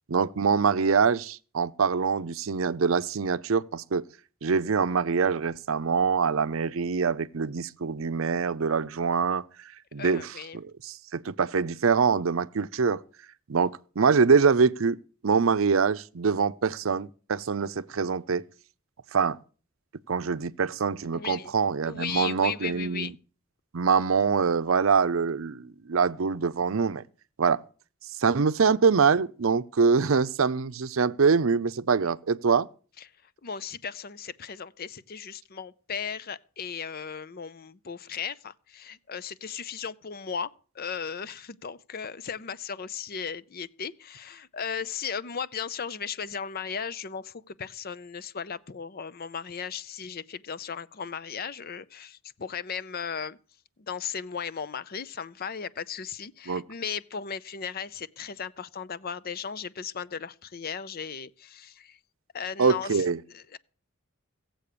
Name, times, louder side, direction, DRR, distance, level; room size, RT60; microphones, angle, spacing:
voice 1, 0.1-4.1 4.4-13.0 13.5-15.0 15.2-18.4 19.1-19.4 20.1-23.1 23.7-27.0 27.4-27.6 28.2-32.7 56.5-56.6 62.6-63.2, right 5 dB, 70° right, 0.6 m, -24 dB
voice 2, 10.0-10.6 21.1-21.5 21.8-23.1 33.4-53.4 53.8-62.0 62.3-63.0 63.3-63.6, left 6 dB, 45° left, 0.6 m, -36 dB
17.0 x 7.8 x 6.8 m
head